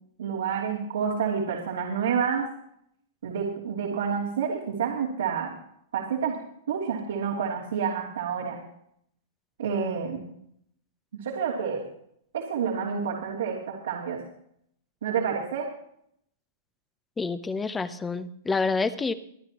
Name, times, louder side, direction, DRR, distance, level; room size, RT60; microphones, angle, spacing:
voice 1, 0.2-2.5 3.2-5.5 5.9-6.4 6.7-8.6 9.6-10.2 11.2-11.8 12.3-14.2 15.0-15.7, right 6 dB, 85° right, -4 dB, 3.2 m, -28 dB
voice 2, 17.2-19.1, left 4 dB, 10° left, 13 dB, 0.8 m, -28 dB
23.5 x 10.5 x 3.1 m, 0.70 s
hypercardioid pair, 150°, 0 cm